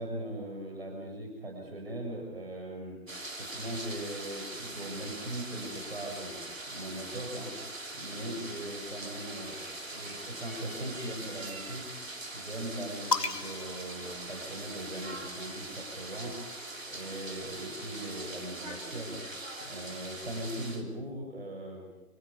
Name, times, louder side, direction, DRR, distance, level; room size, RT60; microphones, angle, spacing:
voice 1, 0.0-3.0 3.4-6.4 6.7-7.5 7.9-11.8 12.3-16.4 16.8-19.2 19.6-21.8, right 1 dB, 40° right, 1 dB, 7.0 m, -39 dB
sound 1, 3.1-20.8, right 2 dB, 55° right, 3.9 m, -42 dB
sound 2, 13.1-14.9 16.0-17.7, left 4 dB, 90° left, 1.3 m, -37 dB
27.5 x 27.5 x 5.3 m, 1.0 s
figure-of-eight pair, 165°, 47 cm